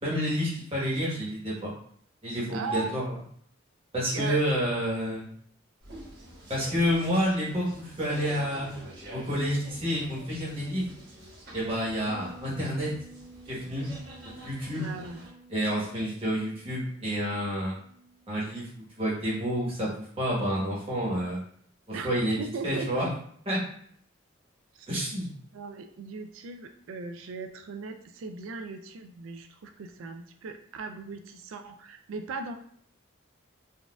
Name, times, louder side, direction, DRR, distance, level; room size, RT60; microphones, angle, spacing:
voice 1, 0.0-1.7 2.2-3.1 3.9-5.3 6.5-8.7 9.1-10.9 11.5-12.9 13.5-13.9 14.4-14.9 15.5-17.7 18.3-21.4 21.9-23.1 23.5-23.6 24.9-25.3, equal, 25° right, -6 dB, 1.1 m, -29 dB
voice 2, 2.5-3.1 4.1-4.4 14.8-15.2 21.9-22.1 22.4-23.1 24.7-24.9 25.5-32.5, right 4 dB, 80° right, 5 dB, 0.3 m, -38 dB
sound 1, 5.8-15.3, right 1 dB, 50° right, 1.2 m, -46 dB
sound 2, 12.1-20.4 20.7-20.8, right 2 dB, 10° right, 0.4 m, -52 dB
4.1 x 2.4 x 2.3 m, 0.62 s
head